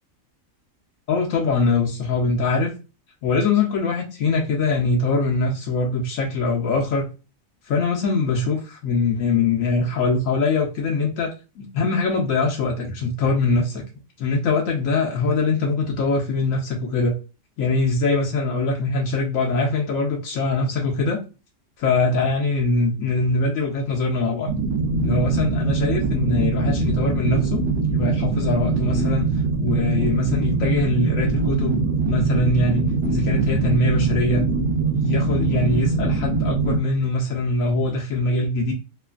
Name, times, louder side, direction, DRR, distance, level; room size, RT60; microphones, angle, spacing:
voice 1, 1.1-2.7 3.2-7.1 7.7-11.3 11.6-13.8 14.2-17.1 17.6-21.2 21.8-24.5 25.0-27.6 27.9-31.8 32.1-34.4 34.9-38.7, left 3 dB, 80° left, 0 dB, 1.0 m, -22 dB
sound 1, 24.4-36.8, right 4 dB, 65° right, 0.7 m, -22 dB
3.0 x 2.4 x 2.3 m, 0.30 s
omnidirectional pair, 1.4 m